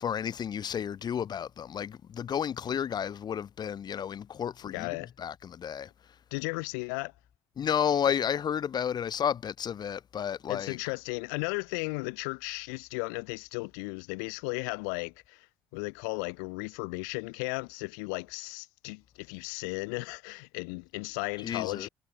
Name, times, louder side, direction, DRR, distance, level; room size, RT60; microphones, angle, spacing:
voice 1, 0.0-5.9 7.6-10.8 21.4-21.9, left 8 dB, 45° left, 1.0 m, -32 dB
voice 2, 4.6-5.1 6.3-7.1 10.5-15.5 15.7-21.9, left 35 dB, 75° left, 1.2 m, -35 dB
hypercardioid pair, 55°, 10 cm